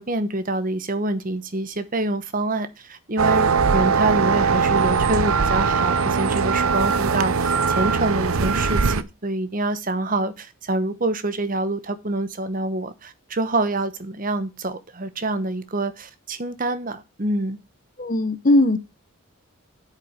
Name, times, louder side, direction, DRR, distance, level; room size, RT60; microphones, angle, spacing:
voice 1, 0.0-17.6, right 2 dB, 40° right, 1.1 m, -26 dB
sound 1, 3.2-9.0, right 5 dB, 75° right, 0.7 m, -20 dB
voice 2, 18.0-18.8, left 1 dB, 40° left, 1.0 m, -18 dB
8.7 x 7.4 x 5.1 m
head